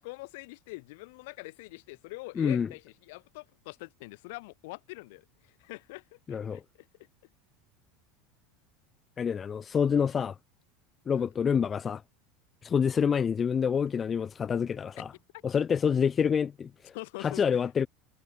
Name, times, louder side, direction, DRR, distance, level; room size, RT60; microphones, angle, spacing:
voice 1, 0.0-7.1 11.1-11.3 15.3-15.4 16.9-17.6, left 24 dB, 75° left, 3.2 m, -44 dB
voice 2, 2.4-2.7 6.3-6.6 9.2-10.4 11.1-12.0 12.6-15.1 15.4-16.9 17.2-17.9, left 7 dB, 30° left, 0.5 m, -27 dB
supercardioid pair, 100°, 0 cm